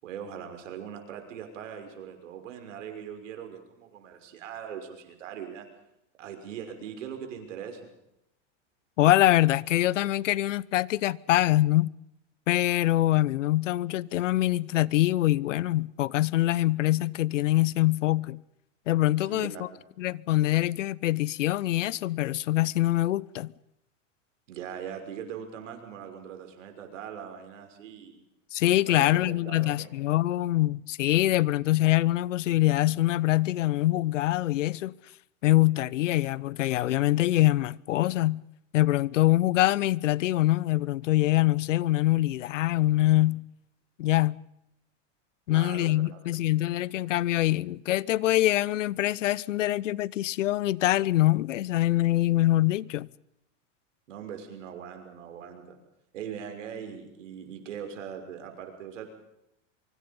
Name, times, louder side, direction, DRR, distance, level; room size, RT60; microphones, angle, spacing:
voice 1, 0.0-5.7 6.2-7.9 19.2-19.8 24.5-28.2 28.9-29.9 45.5-46.3 54.1-55.8 56.1-59.1, right 8 dB, 85° right, 6.2 m, -41 dB
voice 2, 9.0-11.9 12.5-18.4 18.9-19.5 20.0-23.5 28.5-34.9 35.4-38.4 38.7-43.4 44.0-44.4 45.5-53.1, left 15 dB, 90° left, 0.9 m, -24 dB
24.5 x 24.5 x 5.4 m
supercardioid pair, 125°, 37 cm